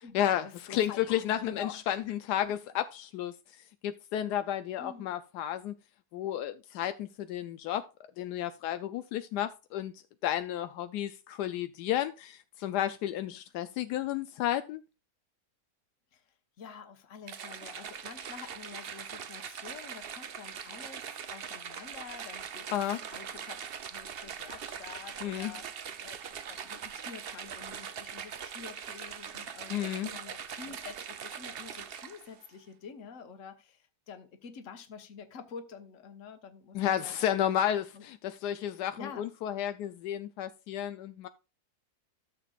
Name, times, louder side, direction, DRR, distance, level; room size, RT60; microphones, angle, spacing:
voice 1, 0.0-2.1 2.4-2.5 4.8-5.1 16.1-16.2 16.6-22.8 23.1-23.6 23.9-37.3 37.9-38.0 39.0-39.2, left 6 dB, 55° left, 1.4 m, -48 dB
voice 2, 0.7-3.3 3.8-5.7 6.1-7.9 8.2-9.9 10.2-14.8 22.7-23.0 25.2-25.5 29.7-30.1 36.7-41.3, left 11 dB, 90° left, 1.2 m, -32 dB
sound 1, 17.3-32.4, right 7 dB, 55° right, 0.7 m, -42 dB
13.5 x 6.9 x 2.4 m
omnidirectional pair, 1.7 m